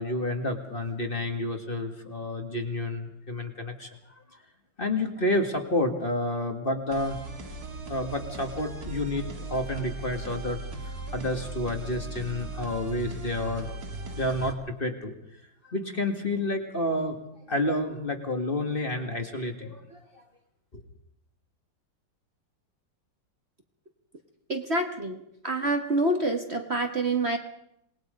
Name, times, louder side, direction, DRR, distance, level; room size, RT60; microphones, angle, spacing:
voice 1, 0.0-3.9 4.3-4.4 4.8-7.2 7.9-13.8 14.2-15.1 15.6-17.2 17.5-20.0 20.7-20.8, left 1 dB, 30° left, 4 dB, 2.2 m, -30 dB
sound 1, 6.9-14.5, right 2 dB, 55° right, 2.6 m, -38 dB
voice 2, 24.5-25.2 25.4-27.4, right 2 dB, 35° right, 4 dB, 1.5 m, -27 dB
27.5 x 20.0 x 5.3 m, 0.78 s
omnidirectional pair, 2.0 m